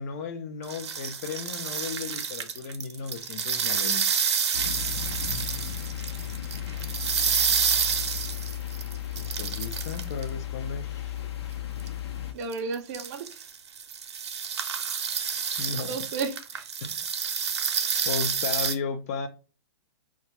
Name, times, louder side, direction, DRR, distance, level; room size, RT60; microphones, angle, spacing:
voice 1, 0.0-4.1 9.2-11.2 15.6-16.0 16.8-17.1 18.1-19.3, left 5 dB, 35° left, 0.4 m, -35 dB
sound 1, 0.6-10.3 11.8-11.9 12.5-18.7, right 7 dB, 80° right, 0.6 m, -29 dB
sound 2, 4.5-12.3, left 11 dB, 70° left, 0.7 m, -35 dB
voice 2, 12.3-13.3 15.8-16.7, right 4 dB, 40° right, 0.4 m, -33 dB
2.7 x 2.2 x 2.9 m
hypercardioid pair, 155°, 14 cm